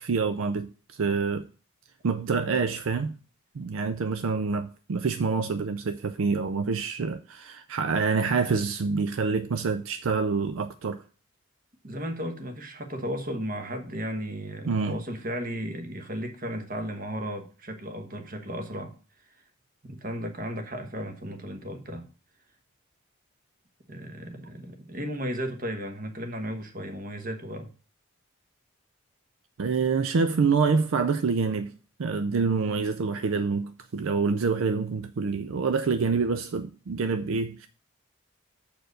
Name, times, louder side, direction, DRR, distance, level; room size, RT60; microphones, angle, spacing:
voice 1, 0.0-1.5 2.0-3.1 3.5-11.0 14.7-15.0 29.6-31.7 32.0-37.7, right 4 dB, 70° right, 0.4 m, -26 dB
voice 2, 11.8-18.9 19.3-19.4 19.8-22.1 23.9-27.7, equal, 40° right, 1.2 m, -35 dB
6.7 x 4.5 x 6.4 m
head